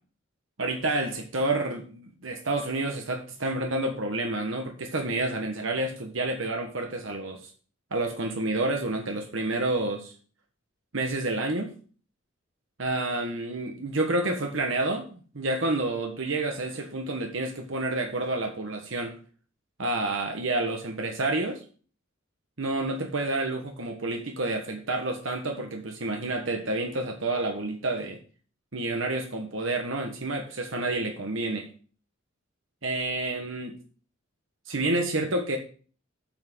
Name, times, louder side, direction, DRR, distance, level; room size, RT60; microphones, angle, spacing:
voice 1, 0.6-7.5 7.9-10.1 10.9-11.7 12.8-15.1 15.3-19.2 19.8-21.6 22.6-28.2 28.7-31.7 32.8-33.7 34.7-35.6, right 2 dB, 75° right, 3 dB, 1.5 m, -29 dB
8.7 x 6.1 x 6.1 m, 0.41 s
head